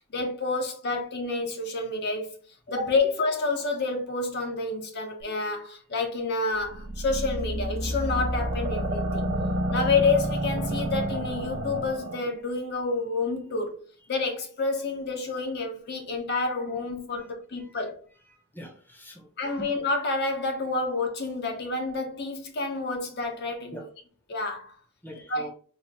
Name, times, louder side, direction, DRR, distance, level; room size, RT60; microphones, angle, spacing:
voice 1, 0.1-2.4 2.7-9.3 9.7-13.7 14.1-18.0 19.4-23.8 24.3-24.7 25.3-25.5, left 3 dB, 50° left, 0.6 m, -29 dB
sound 1, 6.6-12.2, right 1 dB, 75° right, 0.7 m, -29 dB
voice 2, 17.6-17.9 18.3-19.3 23.7-23.9 25.0-25.5, equal, 10° left, 0.7 m, -44 dB
4.0 x 2.0 x 3.4 m
head